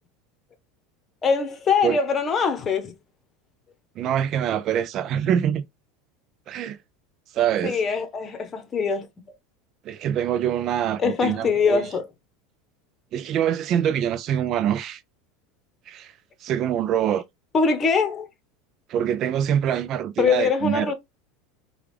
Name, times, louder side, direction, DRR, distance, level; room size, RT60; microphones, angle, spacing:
voice 1, 1.2-2.9 7.6-9.1 11.0-12.1 17.5-18.3 20.2-20.9, left 5 dB, 30° left, 1.0 m, -22 dB
voice 2, 4.0-5.6 6.5-6.8 7.3-7.8 9.8-11.8 13.1-15.0 15.9-16.1 16.4-17.2 18.9-20.9, right 9 dB, 45° right, 0.4 m, -24 dB
4.8 x 2.4 x 3.3 m
supercardioid pair, 110°, 0 cm